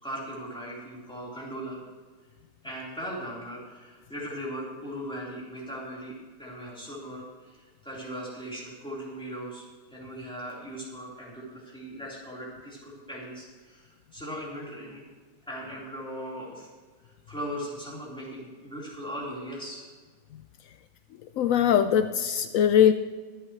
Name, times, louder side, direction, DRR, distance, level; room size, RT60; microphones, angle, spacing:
voice 1, 0.0-1.8 2.6-15.0 15.5-16.7 17.0-19.8, equal, 5° left, -7 dB, 3.9 m, -39 dB
voice 2, 21.4-22.9, left 9 dB, 80° left, 10 dB, 0.7 m, -21 dB
24.0 x 8.8 x 3.2 m, 1.5 s
omnidirectional pair, 1.9 m